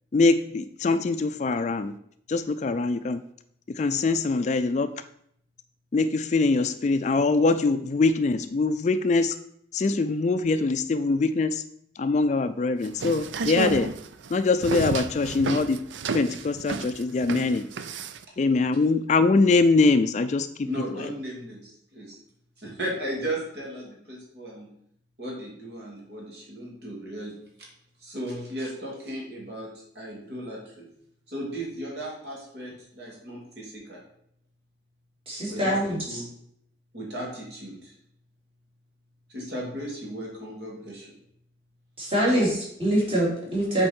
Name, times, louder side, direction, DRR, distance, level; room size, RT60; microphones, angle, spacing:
voice 1, 0.1-1.9 2.3-3.3 3.7-5.0 5.9-9.4 9.7-11.6 12.0-13.9 14.3-15.8 16.1-17.7 18.4-20.7, left 3 dB, 40° left, 11 dB, 0.3 m, -23 dB
sound 1, 12.8-18.2, right 4 dB, 85° right, 0.5 m, -31 dB
voice 2, 20.6-22.1 22.6-24.7 25.2-27.4 28.0-29.7 29.9-30.9 31.3-34.0 35.5-36.3 36.9-37.9 39.3-41.1 42.3-42.4, right 1 dB, 60° right, -3 dB, 2.7 m, -36 dB
voice 3, 35.3-36.0 42.0-43.9, right 1 dB, 30° right, -4 dB, 2.8 m, -24 dB
7.7 x 4.6 x 4.4 m, 0.70 s
head